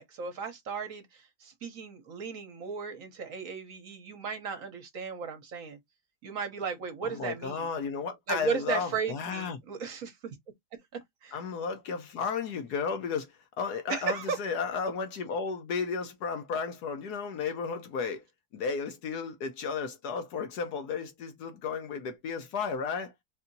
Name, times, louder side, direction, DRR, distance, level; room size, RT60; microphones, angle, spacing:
voice 1, 0.0-5.8 6.2-7.7 8.3-10.2 11.2-11.4 13.9-14.4, right 6 dB, 60° right, 1.2 m, -35 dB
voice 2, 7.0-9.6 11.3-18.2 18.5-23.1, left 5 dB, 75° left, 1.4 m, -33 dB
4.1 x 2.7 x 2.6 m
omnidirectional pair, 1.8 m